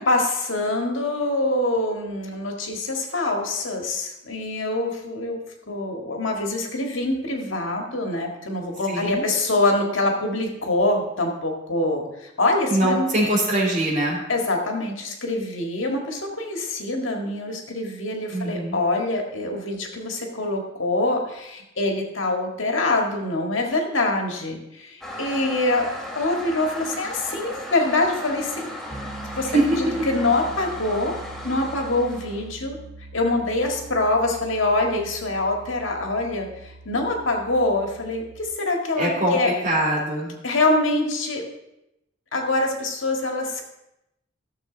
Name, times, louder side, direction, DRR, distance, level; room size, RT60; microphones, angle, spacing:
voice 1, 0.1-5.4 5.7-13.1 14.3-25.9 26.2-28.7 29.4-29.5 29.8-31.1 31.4-32.8 33.1-39.5 40.4-41.4 42.3-43.7, left 2 dB, 85° left, 2 dB, 1.8 m, -25 dB
voice 2, 8.9-9.2 12.7-14.2 18.3-18.8 29.5-29.6 38.9-40.3, right 1 dB, 40° right, -3 dB, 3.0 m, -22 dB
Toilet flush, 25.0-32.5, left 1 dB, ahead, 1.1 m, -36 dB
Piano, 28.9-38.5, right 2 dB, 20° right, 0.9 m, -42 dB
14.0 x 6.9 x 3.9 m, 0.87 s
head